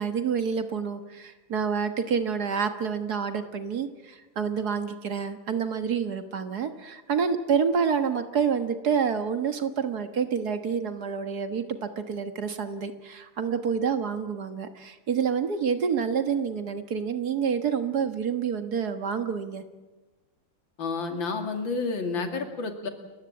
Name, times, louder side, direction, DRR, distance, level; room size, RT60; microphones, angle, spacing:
voice 1, 0.0-19.6, right 6 dB, 55° right, 8 dB, 1.9 m, -28 dB
voice 2, 20.8-22.9, left 4 dB, 80° left, 6 dB, 3.1 m, -30 dB
29.5 x 15.0 x 8.6 m, 1.2 s
omnidirectional pair, 2.1 m